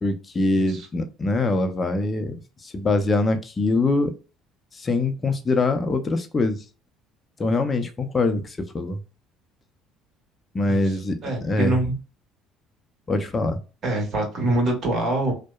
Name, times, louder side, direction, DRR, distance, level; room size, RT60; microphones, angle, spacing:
voice 1, 0.0-2.3 2.6-4.1 4.8-6.6 7.4-9.0 10.5-11.1 11.4-11.7 13.1-13.6, left 2 dB, 25° left, 7 dB, 0.5 m, -23 dB
voice 2, 0.5-0.9 10.7-11.9 13.8-15.3, right 1 dB, 50° right, 0 dB, 1.4 m, -25 dB
2.7 x 2.1 x 2.3 m, 0.33 s
supercardioid pair, 100°, 0 cm